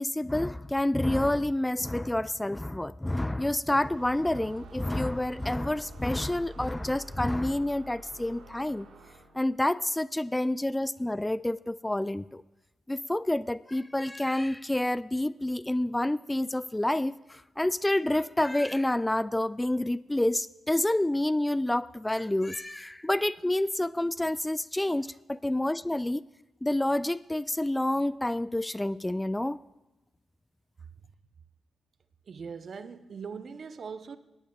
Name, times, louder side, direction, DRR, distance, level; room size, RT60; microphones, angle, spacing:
voice 1, 0.0-8.9 9.3-12.4 12.9-26.2 26.6-29.6, left 1 dB, 15° left, 0.3 m, -28 dB
sound 1, 3.8-9.5, right 1 dB, 75° right, 1.5 m, -48 dB
voice 2, 32.3-34.2, right 5 dB, 60° right, 0.7 m, -40 dB
19.5 x 14.5 x 2.3 m
hypercardioid pair, 40°, 0 cm